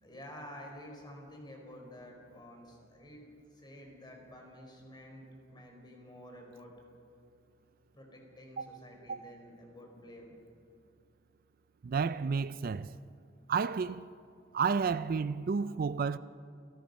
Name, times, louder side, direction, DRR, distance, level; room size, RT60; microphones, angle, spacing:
voice 1, 0.0-3.2 3.5-6.7 7.9-10.4, equal, 25° left, 4.4 m, -50 dB
voice 2, 11.8-13.0 13.5-14.1 14.5-16.2, right 5 dB, 50° right, 0.4 m, -31 dB
27.0 x 18.0 x 5.3 m
head